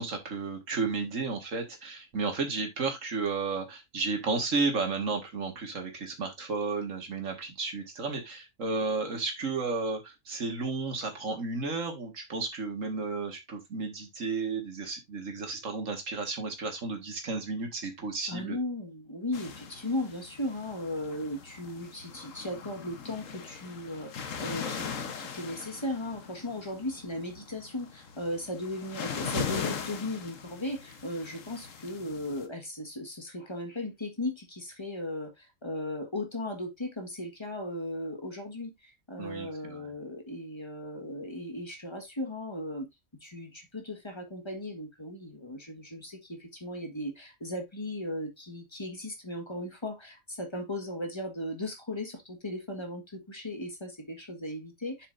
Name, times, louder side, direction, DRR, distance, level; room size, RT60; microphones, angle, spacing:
voice 1, 0.0-18.6 39.2-39.9, right 4 dB, 85° right, 2.1 m, -33 dB
voice 2, 18.3-42.9 43.2-55.1, left 1 dB, 20° left, 1.6 m, -37 dB
sound 1, 19.3-32.5, left 6 dB, 85° left, 1.5 m, -40 dB
7.4 x 6.7 x 2.6 m
omnidirectional pair, 1.3 m